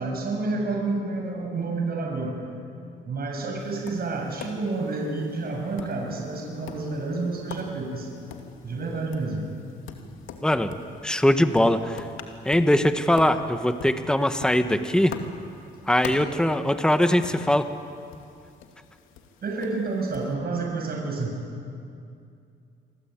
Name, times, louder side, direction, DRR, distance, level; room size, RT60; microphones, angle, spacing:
voice 1, 0.0-2.4 3.1-8.1 8.6-9.5 19.4-21.4, right 3 dB, 50° right, 1 dB, 6.9 m, -29 dB
Tap, 3.6-20.3, left 6 dB, 90° left, 2.5 m, -44 dB
voice 2, 10.4-10.7 11.0-12.1 12.4-15.2 15.9-17.7, left 1 dB, 5° left, 8 dB, 1.5 m, -21 dB
28.0 x 23.0 x 9.1 m, 2.5 s
cardioid pair, 90°, 20 cm